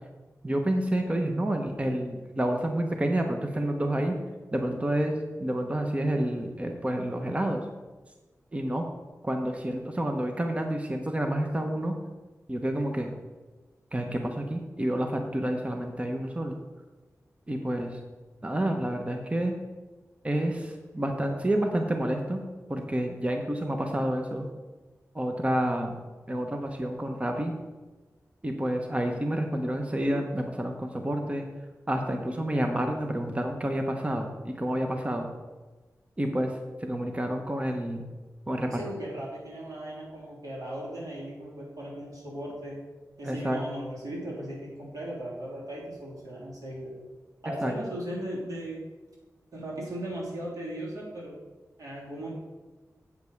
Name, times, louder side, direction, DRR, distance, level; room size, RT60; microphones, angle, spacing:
voice 1, 0.4-4.1 4.5-7.6 8.5-8.9 9.2-11.9 12.5-13.1 13.9-16.6 17.5-18.0 18.4-19.5 20.2-22.4 22.7-24.5 25.1-26.0 26.3-27.5 28.4-31.4 31.9-35.3 36.2-38.0 38.5-38.7 43.2-43.6 47.6-47.7, right 1 dB, 20° right, 3 dB, 0.9 m, -29 dB
voice 2, 38.6-42.8 43.2-47.0 47.4-48.8 49.5-51.4 51.8-52.3, right 1 dB, 85° right, -5 dB, 3.1 m, -37 dB
8.1 x 5.3 x 6.5 m, 1.2 s
wide cardioid pair, 100°, 6 cm